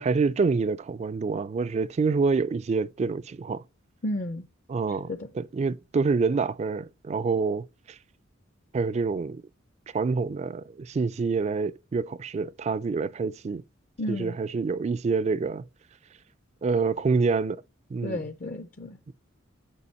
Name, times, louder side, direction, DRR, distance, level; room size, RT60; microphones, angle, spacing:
voice 1, 0.0-3.6 4.7-5.1 5.3-7.7 8.7-9.4 9.9-13.6 14.1-15.6 16.6-17.6 17.9-18.2 19.1-19.2, right 4 dB, 35° right, 0.3 m, -27 dB
voice 2, 4.0-4.5 5.1-5.3 14.0-14.4 18.0-19.0, left 1 dB, 40° left, 0.5 m, -32 dB
6.9 x 5.1 x 4.2 m
head